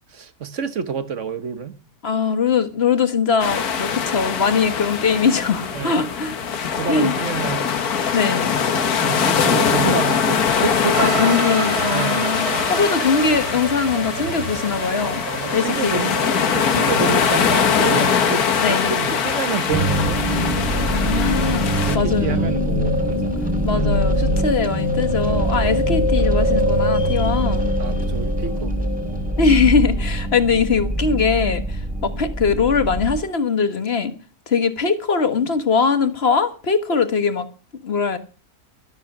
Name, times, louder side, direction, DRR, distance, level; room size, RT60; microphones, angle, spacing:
voice 1, 0.1-1.7 5.7-6.0 6.8-7.7 8.3-8.5 8.8-12.4 15.4-16.2 16.5-20.2 21.6-23.4 23.7-23.8 25.7-25.9 27.8-28.7, right 6 dB, 55° right, 1.4 m, -28 dB
voice 2, 2.0-6.3 6.9-7.1 8.1-8.6 11.0-15.2 15.5-16.2 18.6-18.9 20.9-22.5 23.6-27.7 29.4-34.1 34.5-37.5 37.8-38.2, left 5 dB, 45° left, 1.5 m, -21 dB
sound 1, 3.4-22.0, left 6 dB, 75° left, 1.8 m, -22 dB
sound 2, 10.9-18.9, right 7 dB, 75° right, 1.9 m, -31 dB
sound 3, 19.7-33.2, equal, 5° right, 2.2 m, -22 dB
13.0 x 12.0 x 6.0 m
omnidirectional pair, 1.6 m